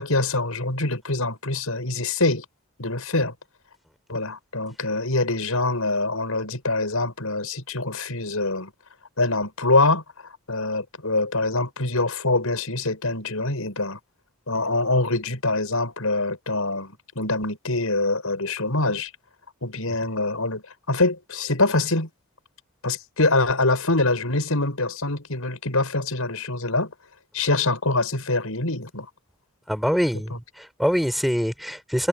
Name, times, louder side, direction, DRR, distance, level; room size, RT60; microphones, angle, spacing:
voice 1, 0.0-2.4 2.8-3.3 4.1-8.7 9.2-10.0 10.5-14.0 14.5-19.1 19.6-22.1 22.8-26.9 27.3-29.1, left 2 dB, 75° left, 5.6 m, -24 dB
voice 2, 29.7-32.1, equal, ahead, 5.2 m, -24 dB
head